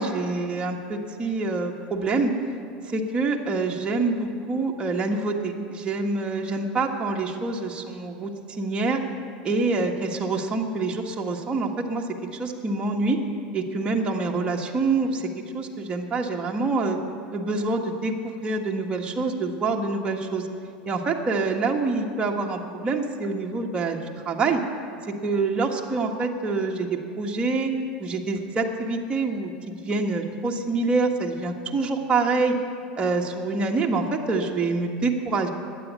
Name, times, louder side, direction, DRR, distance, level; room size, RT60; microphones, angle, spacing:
voice 1, 0.0-2.3 2.9-9.0 9.4-12.1 12.4-13.2 13.5-15.3 15.5-17.0 17.3-20.5 20.9-24.0 24.2-24.6 25.1-27.7 28.0-32.6 33.0-35.5, right 3 dB, 25° right, 0 dB, 1.5 m, -26 dB
12.0 x 9.5 x 9.4 m, 2.4 s
hypercardioid pair, 105°, 5 cm